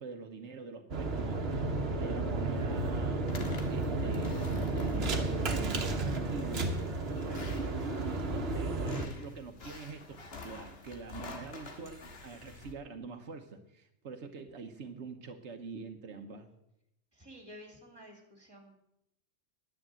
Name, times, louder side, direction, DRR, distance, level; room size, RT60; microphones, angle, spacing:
voice 1, 0.0-3.3 3.7-6.8 8.1-10.2 10.4-16.5, right 4 dB, 80° right, 6 dB, 1.3 m, -44 dB
sound 1, 0.9-9.1, right 2 dB, 60° right, 1.4 m, -32 dB
sound 2, 3.3-12.7, left 3 dB, 60° left, 1.7 m, -48 dB
voice 2, 7.2-7.6 17.1-18.7, equal, 20° right, 2 dB, 2.8 m, -52 dB
9.9 x 9.9 x 7.7 m, 0.82 s
omnidirectional pair, 1.2 m